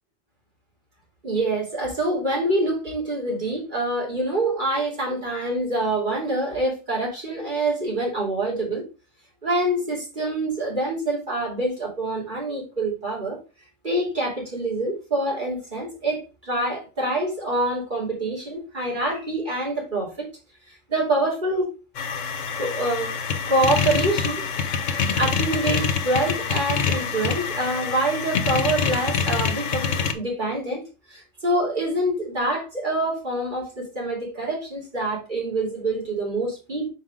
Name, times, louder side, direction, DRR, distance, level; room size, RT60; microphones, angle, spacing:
voice 1, 1.2-8.8 9.4-13.4 13.8-20.3 20.6-21.7 22.6-23.1 23.5-24.4 25.2-30.8 31.1-36.9, right 1 dB, 40° right, 3.0 m, -26 dB
sound 1, 22.0-30.1, left 6 dB, 70° left, 1.1 m, -25 dB
6.3 x 4.7 x 3.7 m
omnidirectional pair, 1.3 m